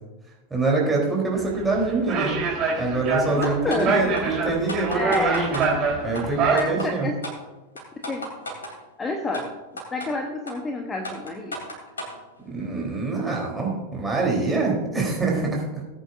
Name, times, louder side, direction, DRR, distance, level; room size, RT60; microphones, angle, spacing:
voice 1, 0.5-2.4 2.8-5.7 6.0-7.1 12.4-15.6, right 3 dB, 10° right, -2 dB, 3.7 m, -25 dB
sound 1, 1.4-6.6, right 5 dB, 35° right, 3.8 m, -25 dB
sound 2, 3.4-3.9 4.2-4.3 4.7-5.7 6.1-6.2 6.6-6.9 7.2-7.4 7.8-8.7 9.3-9.4 9.8-10.1 10.5-10.6 11.0-12.2, equal, 70° left, 3.2 m, -33 dB
voice 2, 3.4-4.3 4.9-5.4 6.5-7.2 8.0-8.3 9.0-9.5 9.9-11.6, left 2 dB, 15° left, 3 dB, 1.1 m, -29 dB
19.0 x 9.1 x 2.6 m, 1.1 s
figure-of-eight pair, 90°, 0 cm